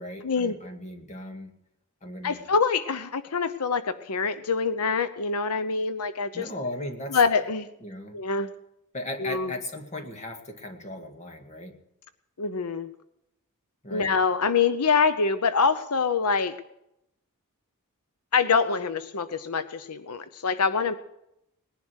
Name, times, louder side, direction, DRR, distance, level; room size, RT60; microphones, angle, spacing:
voice 1, 0.0-1.5 2.0-2.4 6.3-7.2 7.8-8.2 8.9-11.8 13.8-14.1, left 1 dB, 30° left, 5 dB, 2.1 m, -37 dB
voice 2, 2.2-6.5 7.1-7.7 8.1-8.5 9.2-9.5 12.4-12.9 13.9-16.6 18.3-20.9, left 5 dB, 80° left, 12 dB, 0.8 m, -25 dB
19.5 x 11.0 x 6.4 m, 0.82 s
head